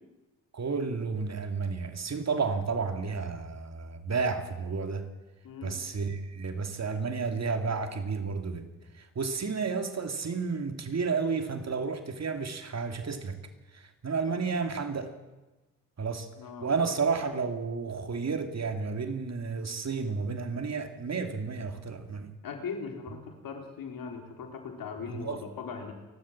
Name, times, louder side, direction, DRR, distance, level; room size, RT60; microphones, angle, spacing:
voice 1, 0.5-5.1 5.6-13.4 13.7-15.2 16.0-16.3 16.6-22.3 25.0-25.4, right 5 dB, 50° right, 2.9 m, -32 dB
voice 2, 5.4-5.8 16.4-16.7 22.4-25.9, left 5 dB, 75° left, 4.0 m, -39 dB
29.5 x 12.5 x 7.5 m
supercardioid pair, 60°, 35 cm